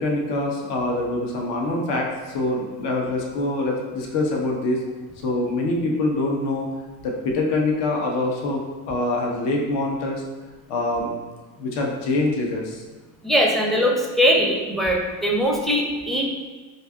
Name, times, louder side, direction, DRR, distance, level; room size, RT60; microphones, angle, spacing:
voice 1, 0.0-4.8 5.2-6.7 7.0-8.6 8.9-10.2 10.7-11.1 11.6-12.8, left 2 dB, 65° left, 0 dB, 0.7 m, -24 dB
voice 2, 13.2-16.3, equal, ahead, -1 dB, 0.4 m, -21 dB
2.6 x 2.3 x 3.4 m, 1.3 s
supercardioid pair, 80°, 44 cm